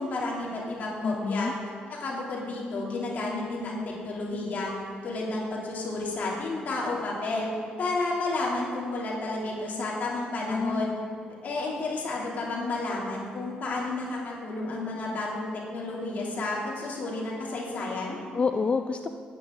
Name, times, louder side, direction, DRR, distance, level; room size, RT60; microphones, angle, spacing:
voice 1, 0.0-1.5 1.9-4.7 5.0-7.5 7.8-10.9 11.4-18.2, left 2 dB, 60° left, -4 dB, 3.1 m, -31 dB
voice 2, 1.0-1.5 10.5-11.0 18.3-19.1, left 4 dB, 35° left, 7 dB, 0.5 m, -27 dB
18.5 x 9.0 x 3.9 m, 2.4 s
cardioid pair, 80°, 3 cm